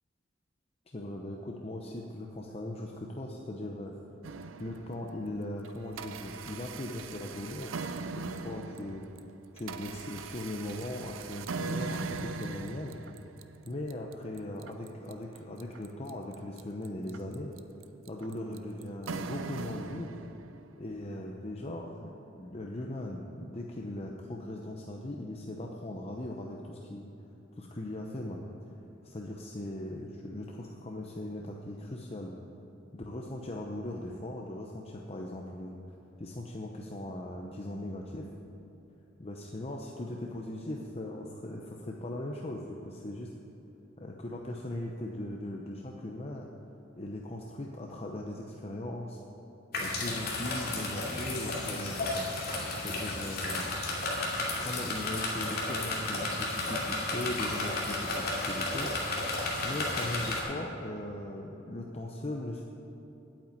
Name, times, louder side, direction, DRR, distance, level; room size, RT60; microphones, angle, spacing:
voice 1, 0.9-3.9 4.6-7.7 8.2-9.0 9.5-12.9 13.7-17.5 18.1-20.1 20.8-27.1 27.6-28.4 29.0-32.3 32.9-35.8 36.2-38.3 39.2-43.3 44.0-46.5 47.0-49.2 49.7-52.3 52.8-53.7 54.6-59.1 59.6-62.6, left 1 dB, 30° left, 0 dB, 0.7 m, -39 dB
sound 1, 4.2-5.2 5.6-20.7, right 4 dB, 90° right, 0.5 m, -40 dB
sound 2, 49.7-60.4, left 2 dB, 50° left, 2.6 m, -33 dB
8.8 x 8.6 x 9.2 m, 2.9 s
head